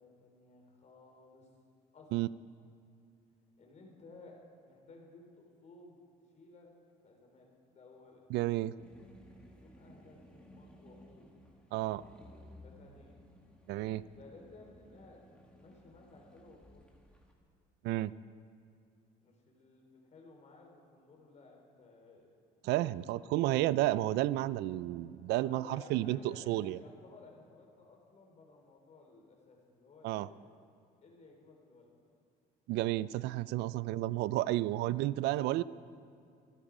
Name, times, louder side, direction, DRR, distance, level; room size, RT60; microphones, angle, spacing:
voice 1, 0.0-1.5 1.9-2.3 3.6-6.0 6.3-6.7 7.0-8.2 9.6-11.3 12.6-13.2 14.1-17.0 19.2-22.4 22.7-23.7 25.4-30.5 31.0-31.9, left 3 dB, 45° left, 1 dB, 3.3 m, -57 dB
voice 2, 8.3-8.7 11.7-12.0 13.7-14.0 17.8-18.1 22.6-26.8 30.0-30.3 32.7-35.6, right 16 dB, 85° right, 18 dB, 0.4 m, -31 dB
sound 1, 8.8-17.3, equal, 5° left, 2.1 m, -57 dB
27.0 x 9.0 x 4.9 m, 2.5 s
cardioid pair, 110°, 17 cm